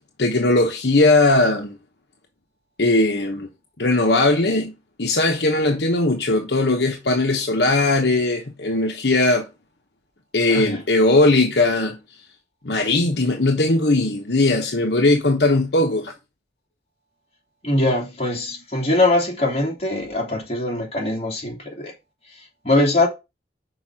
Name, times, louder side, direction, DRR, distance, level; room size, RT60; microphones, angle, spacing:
voice 1, 0.2-1.8 2.8-3.5 3.8-4.7 5.0-9.5 10.3-12.0 12.6-16.1, left 2 dB, 70° left, 1.1 m, -19 dB
voice 2, 17.6-21.9 22.6-23.1, left 2 dB, 35° left, 2.7 m, -22 dB
6.1 x 4.8 x 6.1 m
head